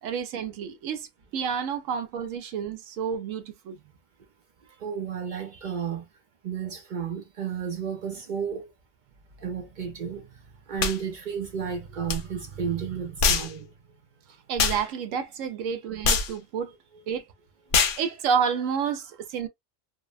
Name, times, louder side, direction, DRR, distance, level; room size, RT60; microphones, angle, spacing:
voice 1, 0.0-1.1 1.3-3.8 14.5-16.8 17.1-17.3 18.0-19.5, right 7 dB, 90° right, 1.0 m, -29 dB
voice 2, 4.8-6.1 6.4-8.7 9.4-10.3 10.7-13.7 16.9-17.0, right 7 dB, 65° right, 0.5 m, -32 dB
sound 1, 10.8-11.0 12.1-12.2 13.2-13.5 14.6-14.8 16.0-16.3 17.7-18.0, left 5 dB, 60° left, 0.6 m, -23 dB
2.6 x 2.1 x 2.3 m
omnidirectional pair, 1.3 m